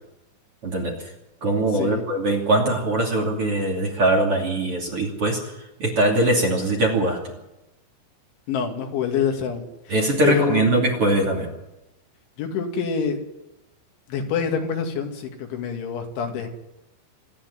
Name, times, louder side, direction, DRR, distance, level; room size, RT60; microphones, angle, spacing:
voice 1, 0.6-0.9 1.4-5.4 5.8-7.2 9.9-11.5, right 2 dB, 35° right, 2 dB, 3.0 m, -21 dB
voice 2, 8.5-10.0 10.2-10.6 12.4-13.2 14.1-16.5, left 7 dB, 80° left, 3 dB, 4.8 m, -26 dB
26.5 x 10.0 x 9.8 m, 0.94 s
omnidirectional pair, 5.4 m